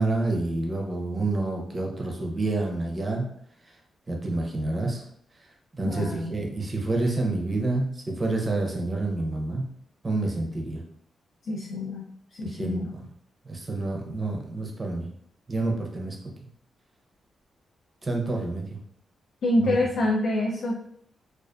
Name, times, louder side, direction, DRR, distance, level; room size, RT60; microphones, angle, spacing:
voice 1, 0.0-3.3 4.1-5.0 5.7-9.6 10.0-10.8 12.4-13.0 13.5-15.1 15.5-16.2 18.0-18.6 19.6-19.7, right 2 dB, 25° right, 1 dB, 0.5 m, -28 dB
voice 2, 5.8-6.4 11.4-12.1 12.4-12.9 19.4-20.8, left 1 dB, 65° left, -2 dB, 0.3 m, -26 dB
2.5 x 2.3 x 2.2 m, 0.68 s
cardioid pair, 120°, 0 cm